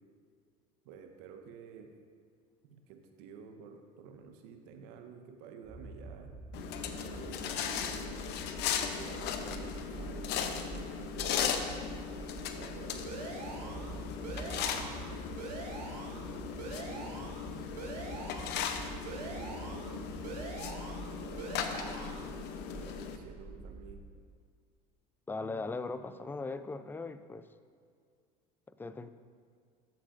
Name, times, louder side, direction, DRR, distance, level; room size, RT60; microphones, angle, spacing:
voice 1, 0.8-1.9 2.7-6.3 6.9-8.2 8.9-11.7 12.6-15.3 15.9-17.2 17.5-17.8 19.0-20.5 21.2-22.3 22.7-24.0, right 6 dB, 70° right, 5 dB, 1.0 m, -50 dB
sound 1, 5.6-24.0, right 3 dB, 5° right, 1.2 m, -47 dB
sound 2, 6.5-23.2, left 8 dB, 55° left, 0.7 m, -38 dB
sound 3, 13.1-13.9 14.2-15.1 15.4-16.2 16.6-17.4 17.8-18.6 19.1-19.9 20.2-21.1 21.4-22.2, right 4 dB, 90° right, 1.4 m, -44 dB
voice 2, 25.3-27.5 28.7-29.1, left 3 dB, 10° left, 12 dB, 0.3 m, -39 dB
11.5 x 7.3 x 2.5 m, 2.2 s
supercardioid pair, 95°, 20 cm